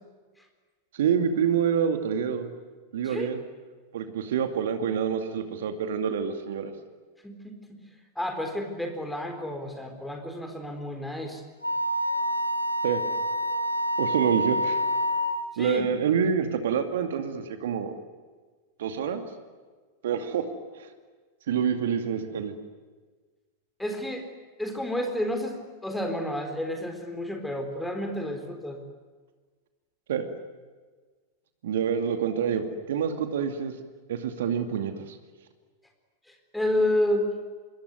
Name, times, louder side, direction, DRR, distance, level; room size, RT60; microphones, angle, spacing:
voice 1, 0.9-2.5 2.9-3.4 3.9-6.7 12.8-13.0 14.0-14.8 15.6-17.9 18.8-19.2 20.0-20.4 20.7-20.9 21.5-22.5 30.1-30.3 31.6-33.7 34.1-35.2, right 7 dB, 60° right, 7 dB, 2.4 m, -27 dB
voice 2, 7.2-7.8 8.2-11.4 15.5-15.9 23.8-24.3 24.6-28.8 36.3-37.3, left 1 dB, 5° left, 4 dB, 4.1 m, -30 dB
Wind instrument woodwind instrument, 11.6-15.5, equal, 90° left, 1.6 m, -27 dB
26.0 x 24.0 x 9.5 m, 1.4 s
figure-of-eight pair, 90°, 0 cm